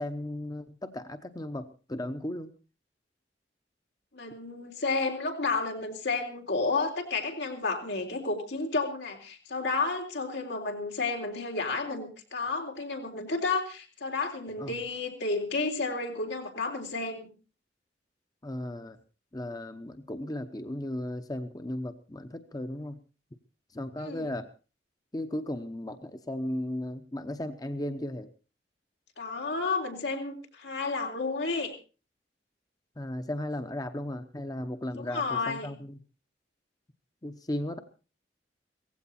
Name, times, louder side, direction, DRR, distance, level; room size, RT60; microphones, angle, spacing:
voice 1, 0.0-2.5 14.6-14.7 18.4-19.0 19.3-23.0 23.7-24.5 25.1-28.3 33.0-36.0 37.2-37.8, left 1 dB, 20° left, 8 dB, 0.9 m, -35 dB
voice 2, 4.1-17.3 24.0-24.3 29.2-31.7 35.0-35.7, left 3 dB, 85° left, 2 dB, 3.7 m, -31 dB
17.0 x 15.5 x 4.3 m, 0.34 s
head